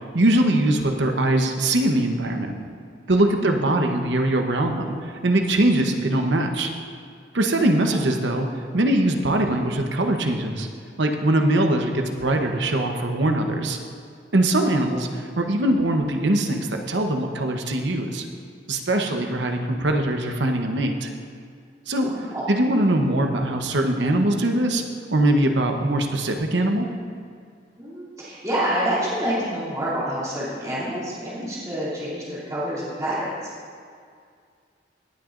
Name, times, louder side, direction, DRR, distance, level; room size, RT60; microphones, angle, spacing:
voice 1, 0.1-2.5 3.1-6.7 7.3-8.5 8.7-10.7 11.0-13.8 14.3-18.3 18.7-21.1 21.9-22.1 22.5-24.8 25.1-26.9, right 1 dB, 70° right, 4 dB, 0.9 m, -22 dB
voice 2, 22.0-22.4 27.8-33.3, right 1 dB, 20° right, -9 dB, 2.8 m, -27 dB
18.0 x 9.0 x 2.5 m, 2.2 s
head